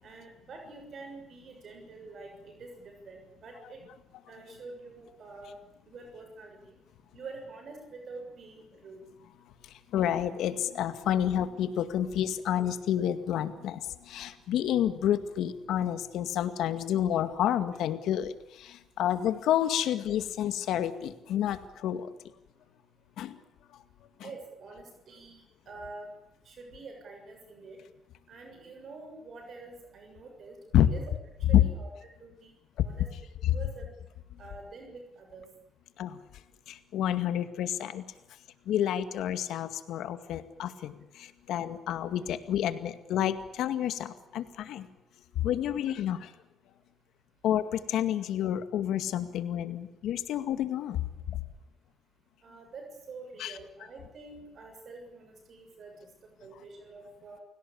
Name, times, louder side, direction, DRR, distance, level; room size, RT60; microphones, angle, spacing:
voice 1, 0.0-3.8 4.3-6.8 7.1-9.0 24.2-26.1 26.5-27.8 28.3-30.6 30.9-31.1 31.5-31.9 32.2-32.5 32.8-33.1 33.5-33.9 34.4-35.5 52.4-56.1 56.4-57.4, right 3 dB, 55° right, 3 dB, 7.0 m, -46 dB
voice 2, 9.9-18.3 18.6-22.1 23.2-23.4 30.7-30.9 31.5-31.6 33.4-33.6 36.0-36.2 36.7-38.0 38.7-44.9 45.4-46.3 47.4-51.0 53.4-53.5, left 11 dB, 80° left, 10 dB, 2.1 m, -29 dB
30.0 x 17.5 x 8.7 m, 0.88 s
cardioid pair, 90°, 0 cm